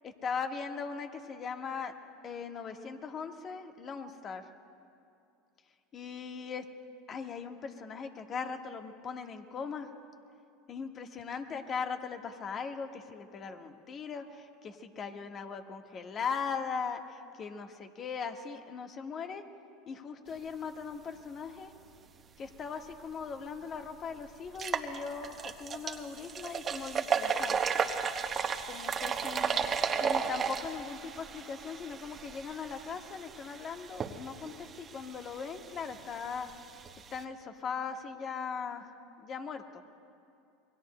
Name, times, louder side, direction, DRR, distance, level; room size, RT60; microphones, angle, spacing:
voice 1, 0.0-1.9 2.2-4.5 5.9-6.6 7.1-9.9 10.7-19.4 19.9-21.7 22.4-27.6 28.7-29.6 30.0-36.5 37.1-38.9 39.2-39.8, left 6 dB, 40° left, 5 dB, 1.4 m, -39 dB
sound 1, 23.2-23.3 23.7-23.8 24.5-37.2, right 6 dB, 35° right, 1.1 m, -34 dB
28.0 x 23.5 x 2.2 m, 2.6 s
hypercardioid pair, 90°, 0 cm